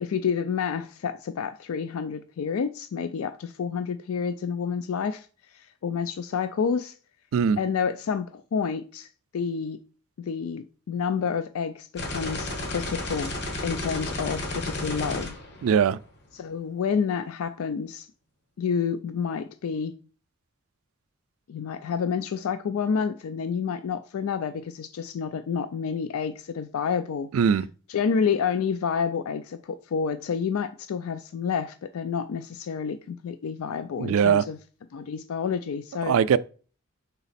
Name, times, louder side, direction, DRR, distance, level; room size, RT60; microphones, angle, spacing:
voice 1, 0.0-6.9 7.6-9.1 9.3-9.8 10.2-13.3 13.6-15.4 16.3-18.1 18.6-20.0 21.5-27.6 27.9-34.6 34.9-36.2, left 6 dB, 85° left, 0.4 m, -29 dB
sound 1, 12.0-16.2, left 2 dB, 55° left, 1.3 m, -33 dB
voice 2, 15.6-16.0 27.3-27.7 34.0-34.4 36.1-36.4, right 7 dB, 75° right, 0.3 m, -20 dB
5.8 x 4.0 x 4.1 m
head